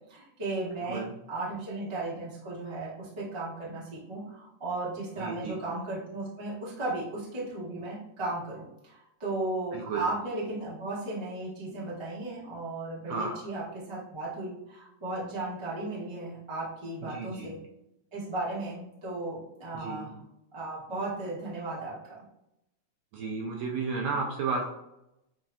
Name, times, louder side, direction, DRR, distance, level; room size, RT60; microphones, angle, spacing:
voice 1, 0.1-1.0 1.3-17.5 18.1-20.1 20.5-22.2, right 2 dB, 35° right, -7 dB, 0.4 m, -35 dB
voice 2, 0.8-1.1 5.2-5.6 9.7-10.1 13.1-13.3 17.0-17.5 19.7-20.1 23.1-24.6, right 4 dB, 75° right, 0 dB, 1.6 m, -33 dB
7.4 x 2.6 x 2.3 m, 0.84 s
omnidirectional pair, 3.5 m